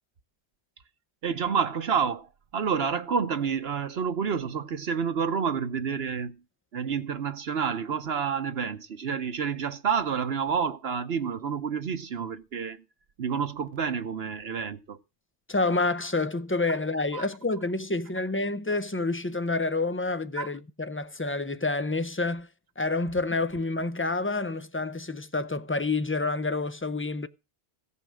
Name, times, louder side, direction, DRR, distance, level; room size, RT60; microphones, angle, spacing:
voice 1, 1.2-6.4 6.7-12.8 13.2-15.0 17.1-17.3 20.4-20.5, right 6 dB, 65° right, 1.1 m, -29 dB
voice 2, 15.5-22.5 22.8-27.3, left 3 dB, 20° left, 0.3 m, -28 dB
16.0 x 5.6 x 6.3 m
omnidirectional pair, 1.2 m